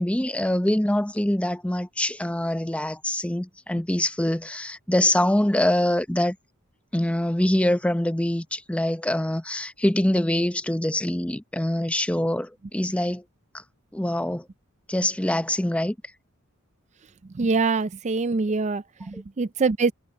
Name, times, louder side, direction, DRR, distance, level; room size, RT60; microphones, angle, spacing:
voice 1, 0.0-6.4 6.9-13.2 13.9-14.5 14.9-15.9 19.1-19.2, left 1 dB, 5° left, 0.6 m, -24 dB
voice 2, 17.4-19.9, right 4 dB, 35° right, 0.4 m, -24 dB
head